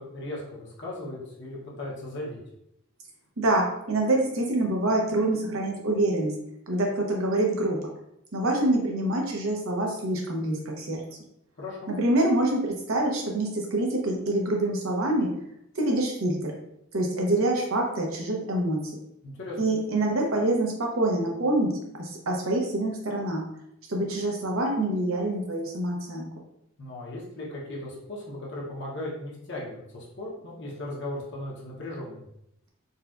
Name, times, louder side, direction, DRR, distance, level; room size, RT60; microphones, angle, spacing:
voice 1, 0.0-2.4 11.6-11.9 19.2-19.6 26.8-32.3, left 1 dB, 55° left, -4 dB, 0.8 m, -37 dB
voice 2, 3.4-6.3 6.7-7.8 8.3-11.0 11.9-15.3 15.8-16.6 16.9-19.0 19.6-21.7 22.0-23.4 23.9-26.3, right 1 dB, 80° right, 0 dB, 0.7 m, -26 dB
4.0 x 2.2 x 2.5 m, 0.79 s
head